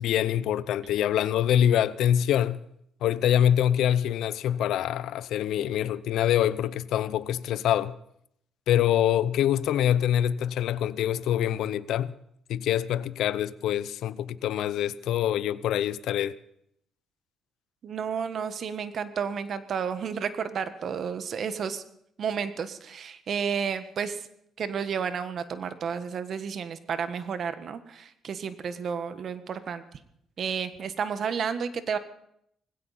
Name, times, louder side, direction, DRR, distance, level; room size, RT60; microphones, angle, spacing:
voice 1, 0.0-2.6 3.0-7.9 8.7-12.1 12.5-16.3, left 10 dB, 80° left, 0.6 m, -25 dB
voice 2, 17.8-21.8 22.2-24.3 24.6-29.8 30.4-32.0, right 7 dB, 60° right, 1.4 m, -31 dB
19.5 x 16.5 x 4.2 m
cardioid pair, 90°, 0 cm